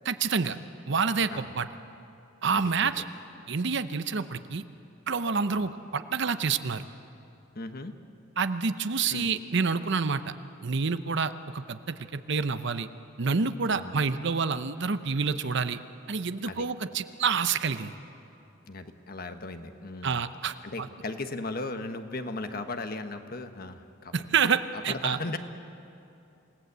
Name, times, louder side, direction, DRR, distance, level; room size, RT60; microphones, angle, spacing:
voice 1, 0.0-0.6 0.9-1.7 2.4-3.0 3.5-4.6 5.1-6.9 8.4-10.3 10.6-12.9 13.2-15.8 16.1-17.9 20.0-20.9 24.1-25.2, right 5 dB, 60° right, 11 dB, 0.8 m, -28 dB
voice 2, 2.5-2.9 5.5-5.7 7.5-8.0 9.1-9.3 13.7-14.0 16.5-16.7 18.7-20.2 20.6-24.3 24.9-25.4, left 2 dB, 50° left, 7 dB, 1.3 m, -37 dB
27.5 x 18.0 x 8.2 m, 2.7 s
head